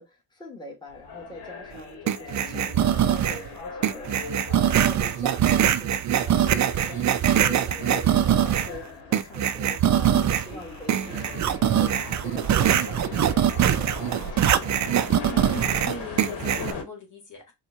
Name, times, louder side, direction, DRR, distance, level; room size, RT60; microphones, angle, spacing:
voice 1, 0.0-14.7, left 1 dB, 10° left, 1.5 m, -44 dB
sound 1, 0.9-16.8, left 4 dB, 70° left, 1.1 m, -40 dB
sound 2, 2.1-3.5 3.8-8.8 9.1-10.5 10.9-16.7, right 10 dB, 45° right, 0.5 m, -22 dB
voice 2, 10.0-10.4 15.1-17.5, equal, 45° left, 1.6 m, -39 dB
4.2 x 2.3 x 2.7 m
cardioid pair, 75°, 41 cm